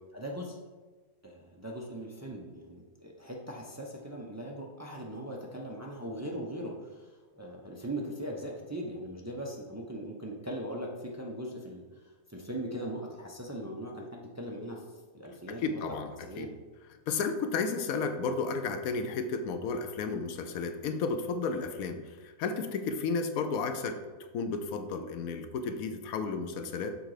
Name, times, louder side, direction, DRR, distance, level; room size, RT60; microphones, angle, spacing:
voice 1, 0.1-0.6 1.2-11.8 12.3-14.8 15.1-16.0 16.3-16.5, right 1 dB, 25° right, -1 dB, 0.3 m, -40 dB
voice 2, 15.5-16.5 17.1-24.0 24.3-27.0, left 4 dB, 80° left, 7 dB, 1.1 m, -33 dB
6.6 x 3.8 x 4.8 m, 1.3 s
omnidirectional pair, 1.5 m